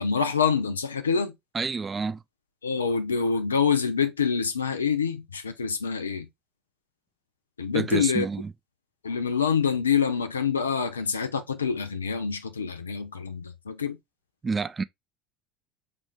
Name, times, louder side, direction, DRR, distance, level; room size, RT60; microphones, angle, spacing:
voice 1, 0.0-1.3 2.6-6.3 7.6-8.3 9.0-14.0, left 6 dB, 80° left, 0.5 m, -26 dB
voice 2, 1.5-2.2 7.7-8.5 14.4-14.8, right 4 dB, 25° right, 0.3 m, -29 dB
5.3 x 2.5 x 3.1 m
figure-of-eight pair, 65°, 0 cm